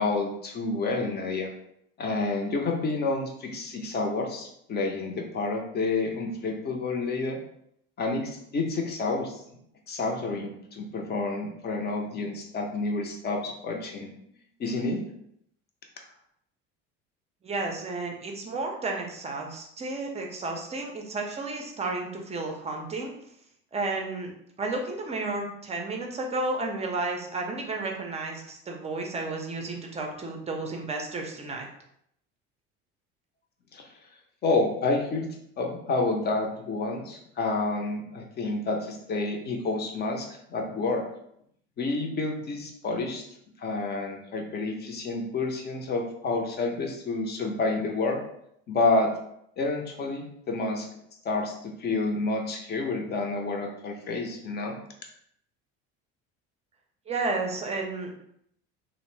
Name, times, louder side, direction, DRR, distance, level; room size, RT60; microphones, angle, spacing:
voice 1, 0.0-1.5 2.0-7.4 8.0-9.4 9.9-14.1 14.6-15.0 33.7-33.9 34.4-35.3 35.6-41.0 41.8-43.2 43.6-48.2 48.7-49.1 49.6-50.9 51.2-54.8, left 3 dB, 35° left, 2 dB, 0.6 m, -29 dB
voice 2, 17.4-23.1 23.7-24.3 24.6-31.7 57.1-58.2, right 3 dB, 20° right, 2 dB, 0.5 m, -32 dB
2.6 x 2.0 x 3.1 m, 0.72 s
cardioid pair, 120°, 30 cm